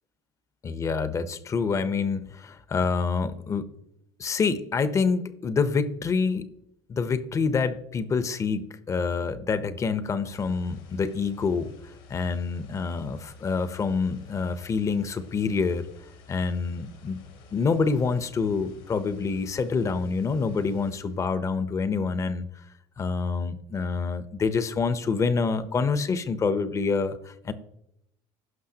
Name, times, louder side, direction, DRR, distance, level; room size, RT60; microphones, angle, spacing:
voice 1, 0.6-3.7 4.2-6.5 6.9-11.7 12.1-15.9 16.3-17.2 17.5-22.4 23.0-27.5, left 5 dB, 30° left, 13 dB, 0.8 m, -27 dB
sound 1, 10.3-21.2, left 3 dB, 85° left, 3.5 m, -52 dB
15.5 x 5.9 x 2.9 m, 0.79 s
supercardioid pair, 110°, 11 cm